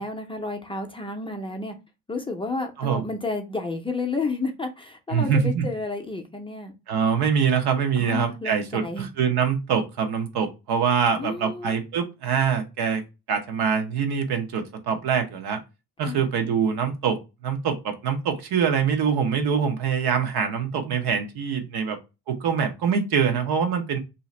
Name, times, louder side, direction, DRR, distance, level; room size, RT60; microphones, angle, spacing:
voice 1, 0.0-1.8 2.1-6.7 8.0-9.1 11.1-11.8 16.0-16.3 23.3-23.5, left 3 dB, 15° left, 4 dB, 0.4 m, -31 dB
voice 2, 5.1-5.6 6.9-13.0 13.3-15.6 16.0-17.2 17.4-22.0 22.3-24.0, right 6 dB, 85° right, 5 dB, 0.9 m, -24 dB
2.8 x 2.5 x 4.1 m, 0.26 s
cardioid pair, 160°, 37 cm